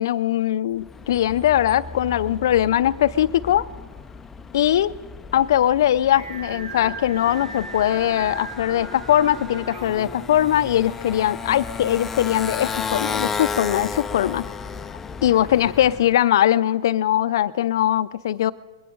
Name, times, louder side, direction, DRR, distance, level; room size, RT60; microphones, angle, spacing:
voice 1, 0.0-3.7 4.5-4.9 5.3-14.4 15.2-18.5, left 11 dB, 65° left, 16 dB, 0.5 m, -21 dB
Motorcycle, 0.8-16.2, left 5 dB, 10° left, 0.5 m, -34 dB
Singing, 6.1-11.2, right 3 dB, 75° right, 3.2 m, -38 dB
21.5 x 17.5 x 3.9 m, 1.3 s
hypercardioid pair, 135°, 2 cm